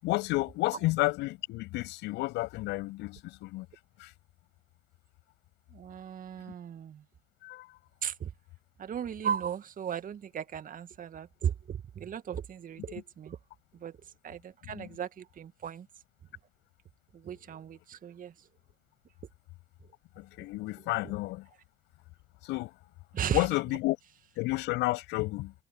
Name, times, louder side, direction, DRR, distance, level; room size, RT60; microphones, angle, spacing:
voice 1, 0.0-3.7 4.0-4.1 7.4-7.8 14.7-14.9 20.2-21.5 22.4-22.7 23.3-24.0 24.4-25.5, left 20 dB, 65° left, 7.6 m, -31 dB
voice 2, 5.7-7.0 8.0-8.3 8.8-13.4 13.8-13.9 14.2-15.9 17.2-18.3 23.1-23.4, right 8 dB, 45° right, 2.0 m, -36 dB
figure-of-eight pair, 50°, 19 cm